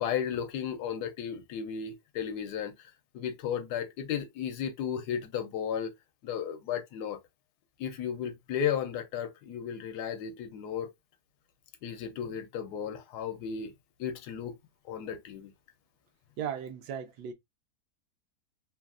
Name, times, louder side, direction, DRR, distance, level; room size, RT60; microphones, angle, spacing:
voice 1, 0.0-5.9 6.2-7.2 7.8-10.9 11.8-13.7 14.0-14.6 14.8-15.5, left 8 dB, 90° left, 1.2 m, -34 dB
voice 2, 16.4-17.3, right 8 dB, 85° right, 1.2 m, -36 dB
3.2 x 2.4 x 2.2 m
omnidirectional pair, 1.7 m